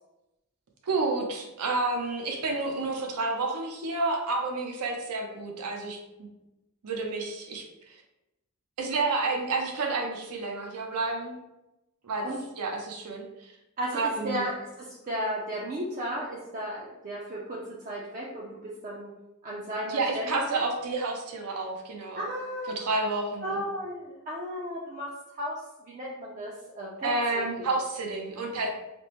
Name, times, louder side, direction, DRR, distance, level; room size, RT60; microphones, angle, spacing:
voice 1, 0.8-6.3 6.8-8.0 8.8-11.3 12.0-12.3 12.6-13.5 13.9-14.4 19.9-22.2 22.7-23.6 27.0-28.7, right 3 dB, 90° right, 2 dB, 0.6 m, -30 dB
voice 2, 13.8-14.5 14.8-19.1 19.4-20.6 22.2-23.0 23.4-25.1 25.3-27.1, equal, 35° right, -4 dB, 0.4 m, -34 dB
3.3 x 2.0 x 2.9 m, 0.93 s
head